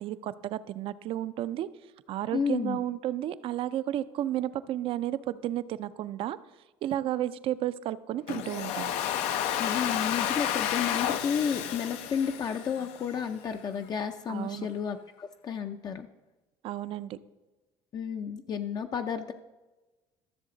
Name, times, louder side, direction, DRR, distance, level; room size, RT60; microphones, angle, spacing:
voice 1, 0.0-1.7 2.1-6.4 6.8-8.9 14.3-14.7 16.6-17.2, right 12 dB, 60° right, 15 dB, 0.5 m, -32 dB
voice 2, 2.3-2.8 9.6-16.1 17.9-19.3, left 7 dB, 40° left, 6 dB, 0.5 m, -32 dB
Domestic sounds home sounds, 8.3-13.2, left 10 dB, 80° left, 0.6 m, -31 dB
13.5 x 6.8 x 3.8 m, 1.1 s
cardioid pair, 110°, 11 cm